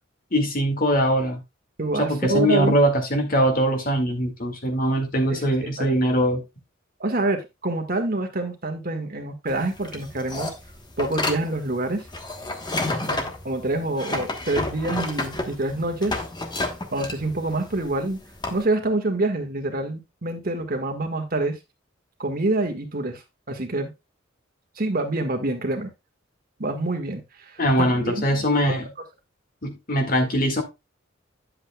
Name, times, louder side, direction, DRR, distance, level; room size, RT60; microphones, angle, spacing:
voice 1, 0.3-1.4 2.0-6.4 27.6-28.9 29.6-30.6, equal, 45° left, 2.0 m, -22 dB
voice 2, 1.8-2.7 5.3-5.4 5.8-6.0 7.0-10.5 11.0-12.1 13.4-16.2 16.9-18.2 18.5-21.6 22.2-23.2 23.5-23.9 24.8-25.9 26.6-28.2, right 2 dB, 45° right, 1.6 m, -26 dB
sound 1, 9.5-18.6, left 2 dB, 20° left, 1.2 m, -30 dB
9.9 x 7.6 x 2.3 m
head